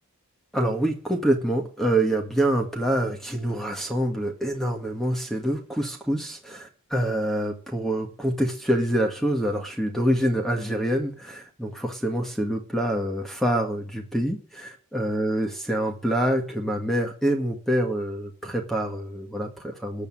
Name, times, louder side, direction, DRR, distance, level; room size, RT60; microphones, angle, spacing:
voice 1, 0.5-20.1, right 1 dB, ahead, 3 dB, 1.9 m, -26 dB
14.0 x 8.2 x 9.3 m, 0.42 s
head